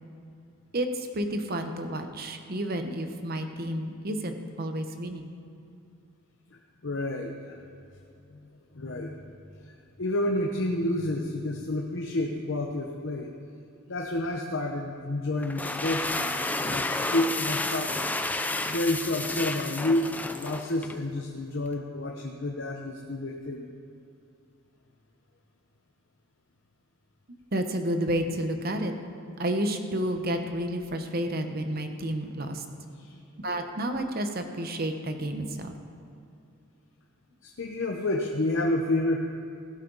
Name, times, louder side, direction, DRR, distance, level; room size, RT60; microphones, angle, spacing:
voice 1, 0.7-5.3 27.5-28.9 29.4-32.6 33.4-35.7, right 1 dB, 45° right, 6 dB, 1.0 m, -30 dB
voice 2, 6.8-7.6 8.3-8.4 8.7-13.3 13.9-17.9 18.7-23.7 33.0-33.2 37.4-39.2, left 1 dB, 65° left, 1 dB, 0.9 m, -30 dB
sound 1, 15.4-21.0, left 2 dB, 10° left, 0.4 m, -31 dB
16.0 x 11.5 x 4.0 m, 2.6 s
head